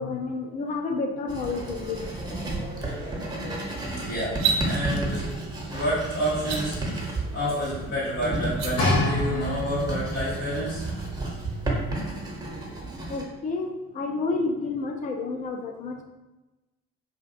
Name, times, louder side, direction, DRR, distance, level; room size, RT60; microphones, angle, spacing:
voice 1, 0.0-2.0 2.7-2.8 13.1-16.0, left 3 dB, 20° left, 2 dB, 0.3 m, -30 dB
Writing, 1.3-13.2, right 2 dB, 10° right, 0.7 m, -32 dB
voice 2, 3.7-4.3 4.6-5.3 5.7-10.8, equal, 90° left, -13 dB, 1.0 m, -29 dB
sound 1, 4.3-4.6 6.4-6.6 8.4-8.7, right 6 dB, 45° right, 0.5 m, -25 dB
sound 2, 8.8-10.0 10.8-10.9, left 2 dB, 40° left, 0.9 m, -25 dB
2.5 x 2.4 x 2.5 m, 1.1 s
hypercardioid pair, 50°, 39 cm